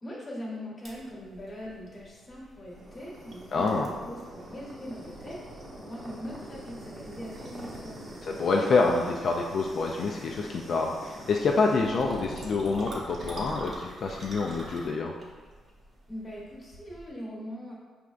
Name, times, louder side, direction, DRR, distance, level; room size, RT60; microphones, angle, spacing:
voice 1, 0.0-5.4 5.8-8.2 16.1-17.7, equal, 25° left, -4 dB, 1.1 m, -41 dB
sound 1, 0.8-17.1, right 1 dB, 40° right, 0.8 m, -43 dB
voice 2, 3.5-3.9 8.2-15.2, left 3 dB, 55° left, 0 dB, 0.3 m, -27 dB
5.0 x 3.3 x 2.4 m, 1.5 s
cardioid pair, 125°, 0 cm